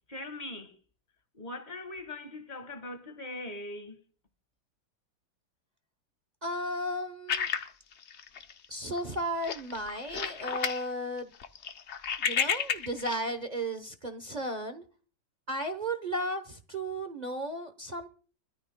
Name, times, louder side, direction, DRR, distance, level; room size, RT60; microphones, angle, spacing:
voice 1, 0.1-0.7 1.3-4.0, left 2 dB, 25° left, 1.5 m, -41 dB
voice 2, 6.4-7.5 8.7-11.3 12.2-14.8 15.5-18.1, right 1 dB, 40° right, 0.6 m, -34 dB
sound 1, 7.3-8.7 9.0-9.2 9.4-10.8 11.2-13.2, left 7 dB, 60° left, 0.7 m, -31 dB
24.5 x 13.5 x 2.2 m
omnidirectional pair, 2.1 m